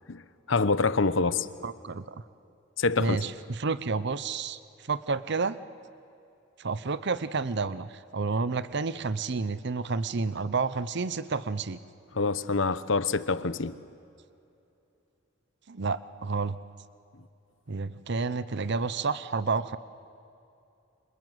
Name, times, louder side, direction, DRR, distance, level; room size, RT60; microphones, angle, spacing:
voice 1, 0.5-1.5 2.8-3.2 12.1-13.8, left 4 dB, 75° left, 1.0 m, -26 dB
voice 2, 1.6-2.2 3.0-5.6 6.6-11.8 15.7-16.6 17.7-19.8, right 4 dB, 60° right, 0.8 m, -30 dB
28.5 x 26.5 x 8.0 m
head